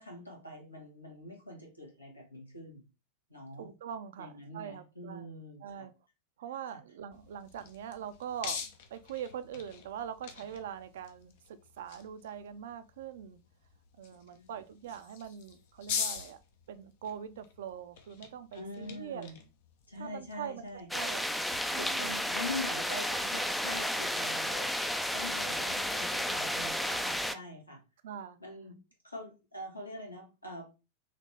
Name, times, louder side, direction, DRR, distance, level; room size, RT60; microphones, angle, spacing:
voice 1, 0.0-2.8 3.3-3.7 4.2-5.9 6.7-6.8 14.3-14.5 18.5-19.4 19.9-20.9 21.7-24.7 25.1-27.8 28.4-28.8 29.0-30.7, left 1 dB, 85° left, 1.6 m, -44 dB
voice 2, 3.6-5.3 5.6-5.9 6.4-13.4 14.0-16.4 16.7-19.3 20.0-20.7 20.9-21.4 21.7-22.2 25.3-25.7 28.0-28.4, right 9 dB, 60° right, 0.4 m, -43 dB
sound 1, 7.1-21.6, left 6 dB, 55° left, 0.7 m, -44 dB
sound 2, 20.9-27.4, left 1 dB, 5° left, 0.4 m, -32 dB
4.2 x 2.9 x 3.2 m
figure-of-eight pair, 90°, 0 cm